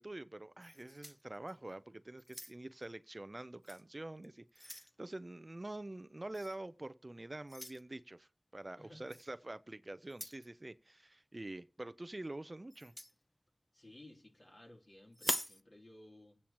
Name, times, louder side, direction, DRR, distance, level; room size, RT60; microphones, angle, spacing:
voice 1, 0.0-12.9, right 2 dB, 40° right, 0.5 m, -46 dB
handling keys, 0.6-1.7 2.2-2.8 3.6-3.8 4.2-4.9 6.3-6.6 7.5-7.8 9.1-9.3 10.1-10.5 12.7-13.1 15.1-15.6, equal, 10° left, 0.7 m, -43 dB
voice 2, 8.8-9.1 13.7-16.4, left 1 dB, 55° left, 3.1 m, -57 dB
24.0 x 8.6 x 3.0 m
wide cardioid pair, 45°, 0 cm